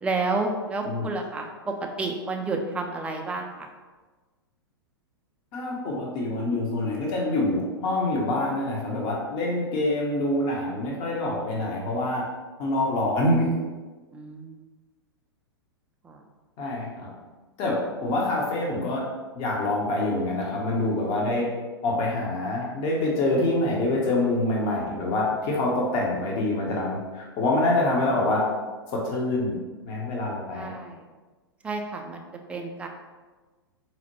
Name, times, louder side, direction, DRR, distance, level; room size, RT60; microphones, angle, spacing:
voice 1, 0.0-3.7 14.1-14.6 16.0-16.2 30.5-31.0 31.6-32.2 32.5-32.9, right 3 dB, 10° right, 2 dB, 0.3 m, -30 dB
voice 2, 5.5-12.2 12.6-13.6 16.6-17.1 17.6-19.1 19.4-21.5 21.8-28.5 28.9-29.6 29.8-30.7, left 2 dB, 35° left, -2 dB, 0.7 m, -26 dB
4.2 x 2.1 x 2.9 m, 1.3 s
figure-of-eight pair, 105°, 14 cm